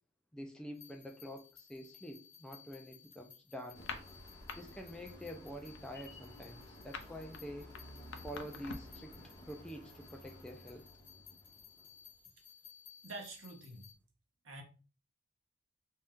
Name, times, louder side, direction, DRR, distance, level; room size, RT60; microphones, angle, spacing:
voice 1, 0.3-3.8 4.6-7.8 8.2-9.2 9.4-10.8, equal, 5° left, 0.3 m, -47 dB
sound 1, 0.7-13.9, left 8 dB, 45° left, 1.1 m, -59 dB
sound 2, 3.7-4.6 4.9-5.2 5.5-9.0, left 5 dB, 60° left, 0.5 m, -46 dB
sound 3, 3.7-12.1, left 1 dB, 20° left, 0.8 m, -54 dB
voice 2, 13.0-13.9 14.4-14.6, right 2 dB, 70° right, 0.8 m, -47 dB
2.7 x 2.3 x 3.5 m
head